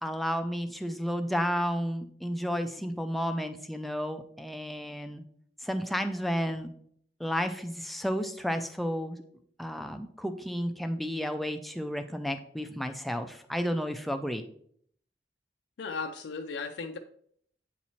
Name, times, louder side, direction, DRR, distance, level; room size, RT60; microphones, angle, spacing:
voice 1, 0.0-5.2 5.6-6.7 7.2-9.2 9.6-14.4, equal, ahead, 7 dB, 0.3 m, -32 dB
voice 2, 15.8-17.0, left 4 dB, 85° left, 4 dB, 0.4 m, -36 dB
8.2 x 4.2 x 3.0 m, 0.64 s
head